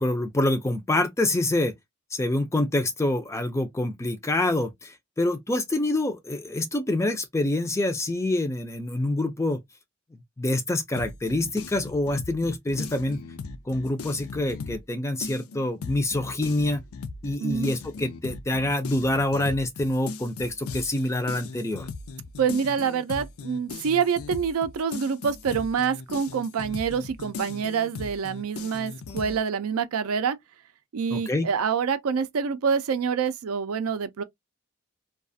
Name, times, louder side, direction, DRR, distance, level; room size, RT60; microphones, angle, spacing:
voice 1, 0.0-1.7 2.1-9.6 10.4-13.2 13.7-16.8 17.2-21.9 31.1-31.5, left 1 dB, 15° left, 0.3 m, -26 dB
sound 1, 11.0-14.9 15.2-29.4, left 4 dB, 80° left, 0.4 m, -38 dB
voice 2, 17.4-17.7 22.4-30.4 30.9-34.2, right 6 dB, 80° right, 0.4 m, -26 dB
2.4 x 2.3 x 2.5 m
head